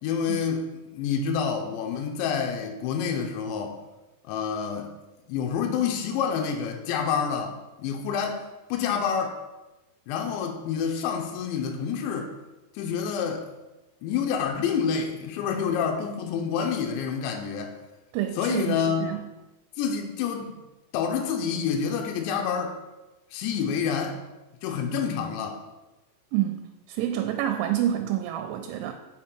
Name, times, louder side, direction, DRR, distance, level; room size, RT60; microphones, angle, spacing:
voice 1, 0.0-3.8 4.2-4.9 5.3-8.4 8.7-9.4 10.1-12.3 12.7-13.5 14.0-17.7 18.4-19.1 19.8-20.6 20.9-22.8 23.3-24.2 24.6-25.6, left 7 dB, 80° left, 2 dB, 2.9 m, -28 dB
voice 2, 18.1-19.2 26.3-28.9, right 11 dB, 85° right, 6 dB, 2.9 m, -28 dB
6.2 x 5.9 x 4.4 m, 1.0 s
omnidirectional pair, 5.6 m